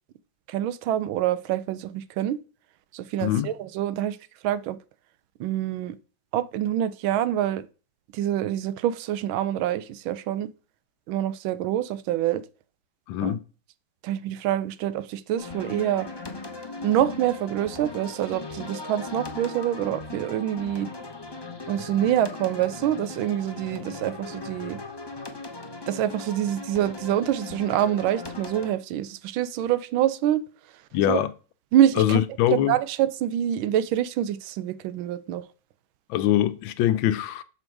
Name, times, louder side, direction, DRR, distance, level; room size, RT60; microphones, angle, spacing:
voice 1, 0.5-2.4 2.9-4.2 4.4-4.8 5.4-6.0 6.3-7.7 8.1-10.5 11.1-12.4 13.2-13.3 14.0-16.1 16.8-20.9 21.7-24.8 25.9-30.4 31.1-31.2 31.7-32.2 32.5-35.5, right 11 dB, 80° right, 1.4 m, -26 dB
voice 2, 13.1-13.4 30.9-31.3 32.0-32.8 36.1-37.4, left 12 dB, 75° left, 1.3 m, -23 dB
sound 1, 15.4-28.7, left 3 dB, 30° left, 0.4 m, -38 dB
7.0 x 5.3 x 4.6 m
omnidirectional pair, 2.2 m